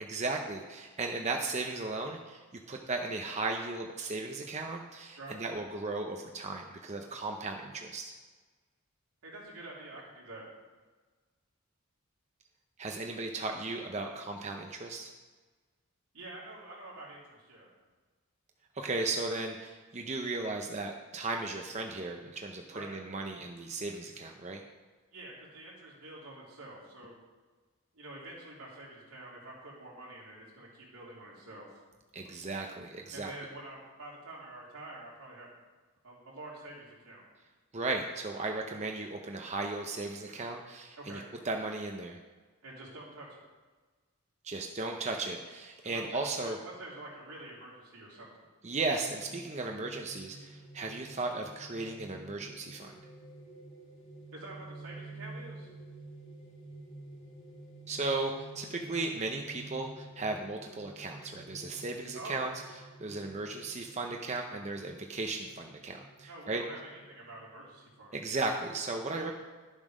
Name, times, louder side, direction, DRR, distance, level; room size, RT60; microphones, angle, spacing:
voice 1, 0.1-8.1 12.8-15.1 18.7-24.6 32.1-33.3 37.7-42.2 44.4-46.6 48.6-52.9 57.9-62.5 63.0-66.6 68.1-69.3, right 3 dB, 30° right, 3 dB, 0.7 m, -36 dB
voice 2, 9.2-10.5 16.1-17.7 22.7-23.0 25.1-27.2 27.9-31.7 33.1-35.5 36.0-37.2 41.0-41.3 42.6-43.4 45.8-48.5 54.3-55.7 62.1-62.7 66.3-68.2, right 2 dB, 85° right, -4 dB, 3.4 m, -47 dB
sound 1, 49.0-68.2, right 2 dB, 30° left, 2.2 m, -50 dB
12.0 x 7.3 x 5.1 m, 1.4 s
head